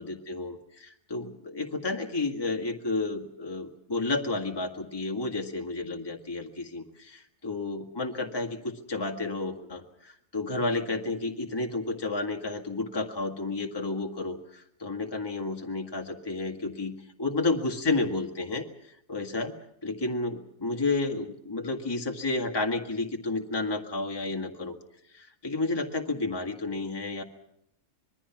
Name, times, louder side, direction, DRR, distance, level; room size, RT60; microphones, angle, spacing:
voice 1, 0.0-16.9 17.2-19.5 19.8-24.8 25.1-27.2, left 3 dB, 15° left, 3 dB, 1.7 m, -31 dB
26.0 x 21.5 x 5.9 m, 0.73 s
omnidirectional pair, 1.6 m